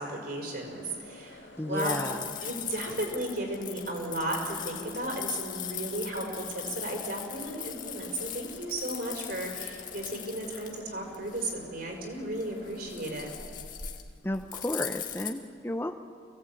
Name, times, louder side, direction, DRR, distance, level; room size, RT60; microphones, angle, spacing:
voice 1, 0.0-2.0 2.4-13.3, right 1 dB, 55° right, 1 dB, 5.2 m, -35 dB
sound 1, 0.5-13.3, left 2 dB, 85° left, 2.5 m, -50 dB
voice 2, 1.6-2.2 14.2-15.9, left 1 dB, 10° left, 6 dB, 0.8 m, -32 dB
sound 2, 1.8-15.3, left 10 dB, 45° left, 1.8 m, -40 dB
25.5 x 17.5 x 8.7 m, 2.2 s
head